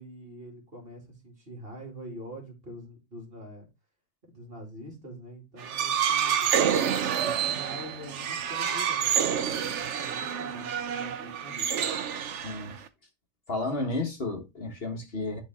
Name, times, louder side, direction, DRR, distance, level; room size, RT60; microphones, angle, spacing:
voice 1, 0.0-3.7 4.3-6.5 7.2-11.7, equal, 45° right, 2.9 m, -45 dB
sound 1, 5.6-12.9, right 8 dB, 70° right, 1.1 m, -28 dB
voice 2, 12.2-12.7 13.5-15.4, left 2 dB, 50° left, 1.7 m, -32 dB
11.0 x 4.1 x 3.6 m
omnidirectional pair, 1.3 m